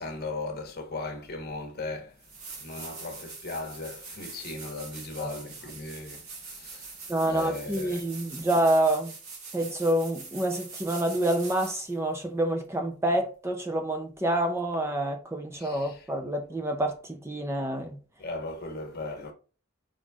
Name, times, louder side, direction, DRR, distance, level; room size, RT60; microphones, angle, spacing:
voice 1, 0.0-2.2 2.6-8.0 15.6-16.1 18.2-19.3, left 3 dB, 50° left, 1.1 m, -37 dB
sound 1, 1.7-1.8 2.2-12.0 14.7-14.8, right 4 dB, 85° right, 1.5 m, -43 dB
voice 2, 7.1-9.1 9.5-18.0, right 1 dB, 15° right, 0.5 m, -27 dB
4.9 x 4.1 x 2.3 m
head